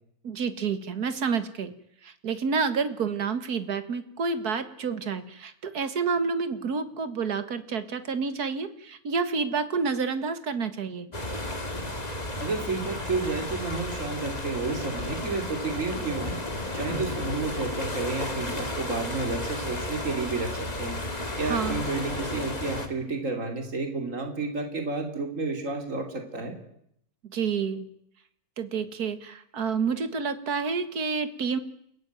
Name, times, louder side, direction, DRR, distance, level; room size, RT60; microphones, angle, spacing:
voice 1, 0.2-1.7 2.0-11.1 21.4-21.8 27.3-27.9 28.6-31.6, right 5 dB, 80° right, 11 dB, 2.1 m, -29 dB
sound 1, 11.1-22.9, left 1 dB, 25° left, 2.5 m, -33 dB
voice 2, 12.4-16.4 16.7-21.0 21.4-26.5, right 3 dB, 55° right, 4 dB, 3.3 m, -31 dB
29.5 x 15.5 x 9.3 m, 0.75 s
omnidirectional pair, 1.6 m